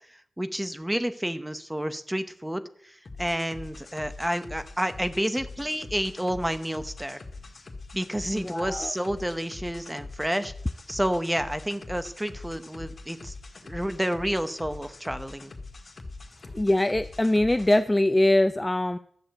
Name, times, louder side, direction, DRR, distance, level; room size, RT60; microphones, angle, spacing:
voice 1, 0.1-7.2 7.9-10.5 10.9-13.3 13.6-15.5, equal, 5° right, 10 dB, 0.9 m, -30 dB
sound 1, 3.0-17.8, left 3 dB, 45° left, 1.9 m, -43 dB
voice 2, 8.3-8.9 16.5-19.0, left 1 dB, 15° left, 10 dB, 0.4 m, -23 dB
13.0 x 7.1 x 7.9 m, 0.64 s
wide cardioid pair, 120°, 0 cm